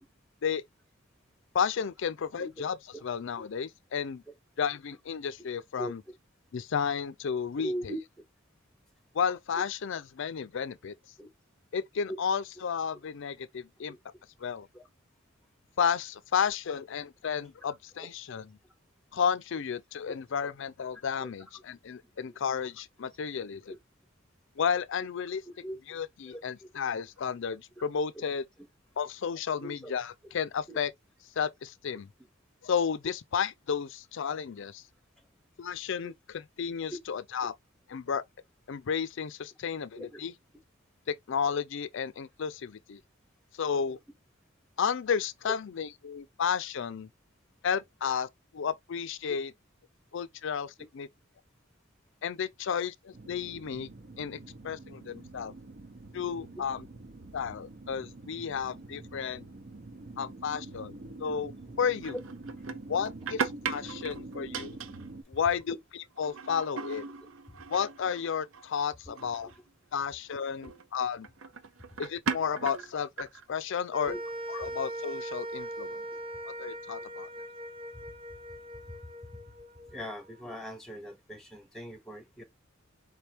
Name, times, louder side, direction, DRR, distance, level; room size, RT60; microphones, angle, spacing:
voice 1, 1.5-4.2 4.6-6.0 6.5-7.9 9.1-10.9 11.7-14.0 14.4-14.7 15.8-18.6 19.1-23.7 24.6-25.4 25.9-28.4 29.0-30.9 31.4-32.1 32.6-34.8 35.6-37.5 37.9-38.2 38.7-40.3 41.1-43.0 43.6-44.0 44.8-47.1 47.6-48.3 48.5-49.5 50.1-51.1 52.2-53.9 54.2-55.5 56.1-56.9 57.3-59.5 60.2-61.5 61.8-62.2 62.9-64.8 65.3-67.0 67.7-69.5 69.9-71.3 72.0-74.2 74.5-76.0 76.4-77.3, left 7 dB, 65° left, 0.4 m, -32 dB
voice 2, 7.6-8.0 9.5-9.6 11.2-11.3 13.9-14.0 14.7-14.8 21.2-21.3 25.6-25.8 26.3-26.4 29.6-29.9 30.7-30.8 36.0-36.1 40.0-40.2 49.3-49.4 67.2-67.3 69.1-69.2 74.1-74.2 79.9-82.4, equal, 5° left, 0.8 m, -40 dB
sound 1, 53.1-65.2, right 2 dB, 50° right, 0.9 m, -46 dB
sound 2, 62.0-65.1 65.4-65.7 66.0-68.7 69.2-69.6 70.6-70.8 71.2-73.4, right 5 dB, 80° right, 0.7 m, -38 dB
sound 3, 73.9-80.3, right 1 dB, 25° right, 1.2 m, -40 dB
4.8 x 3.4 x 2.9 m
head